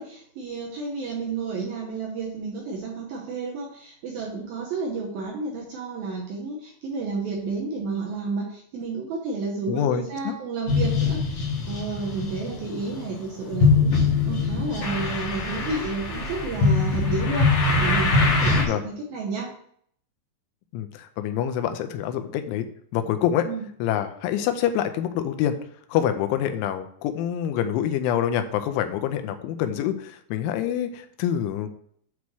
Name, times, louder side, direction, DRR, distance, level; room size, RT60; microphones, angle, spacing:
voice 1, 0.0-13.9 14.3-17.5 17.8-19.5 23.5-23.7, right 4 dB, 80° right, -1 dB, 2.1 m, -31 dB
voice 2, 9.7-10.3 18.7-18.8 20.7-22.7 22.9-23.5 23.8-25.6 25.9-31.7, left 10 dB, 80° left, 8 dB, 2.9 m, -26 dB
sound 1, 10.7-18.6, left 3 dB, 65° left, 1.6 m, -23 dB
8.3 x 3.1 x 6.1 m, 0.63 s
omnidirectional pair, 5.6 m